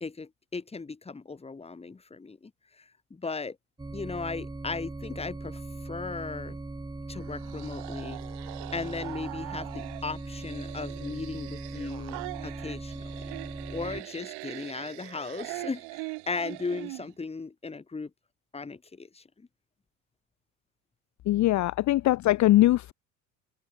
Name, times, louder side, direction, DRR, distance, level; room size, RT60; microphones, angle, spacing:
voice 1, 0.0-2.5 2.8-3.6 3.9-6.6 7.1-8.2 8.7-13.4 13.7-18.1 18.5-19.5, left 4 dB, 10° left, 1.9 m, -37 dB
sound 1, 3.8-14.0, right 2 dB, 10° right, 2.0 m, -39 dB
sound 2, 7.1-17.1, right 34 dB, 55° right, 1.9 m, -42 dB
voice 2, 21.3-22.9, left 15 dB, 35° left, 1.0 m, -21 dB
open air
figure-of-eight pair, 75°, 48 cm